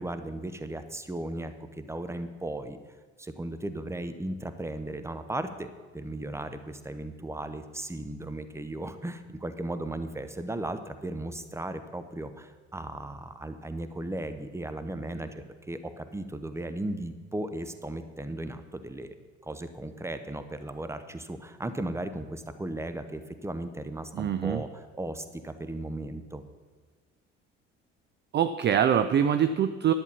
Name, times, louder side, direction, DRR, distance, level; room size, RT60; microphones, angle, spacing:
voice 1, 0.0-2.8 3.2-19.1 19.4-26.4, right 1 dB, 5° right, 10 dB, 0.9 m, -36 dB
voice 2, 24.1-24.6 28.3-29.9, right 9 dB, 30° right, 11 dB, 0.5 m, -24 dB
11.0 x 8.6 x 5.7 m, 1.4 s
figure-of-eight pair, 55°, 37 cm